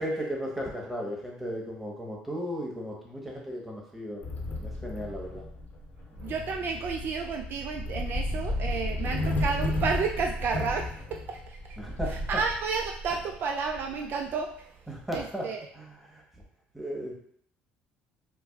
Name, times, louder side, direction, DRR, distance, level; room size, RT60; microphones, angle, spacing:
voice 1, 0.0-4.2 4.6-5.4 11.8-12.4 14.9-15.5 15.7-16.2 16.7-17.1, equal, 5° right, -2 dB, 1.1 m, -35 dB
sound 1, 4.2-14.4, left 1 dB, 45° left, 0.7 m, -33 dB
voice 2, 6.2-11.8 12.1-14.7 15.1-15.6, right 5 dB, 55° right, 3 dB, 0.3 m, -31 dB
4.7 x 2.1 x 2.3 m, 0.64 s
supercardioid pair, 80°, 4 cm